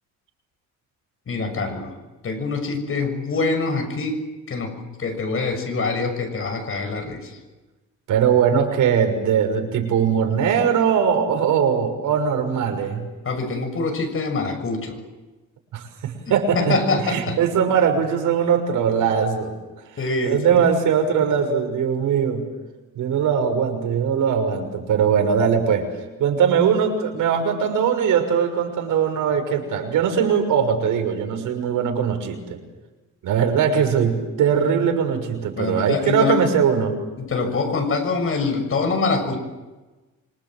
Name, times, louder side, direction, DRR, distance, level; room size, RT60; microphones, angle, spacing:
voice 1, 1.3-1.9 2.2-4.2 4.5-4.7 5.0-7.3 13.2-15.0 16.5-17.4 20.0-20.6 35.6-36.4 37.2-39.4, left 3 dB, 45° left, 6 dB, 6.8 m, -24 dB
voice 2, 8.1-13.1 15.7-19.6 20.2-22.5 22.9-25.9 26.2-32.6 33.2-36.9, right 7 dB, 85° right, 4 dB, 6.1 m, -20 dB
26.5 x 25.5 x 7.8 m, 1.2 s
cardioid pair, 125°, 31 cm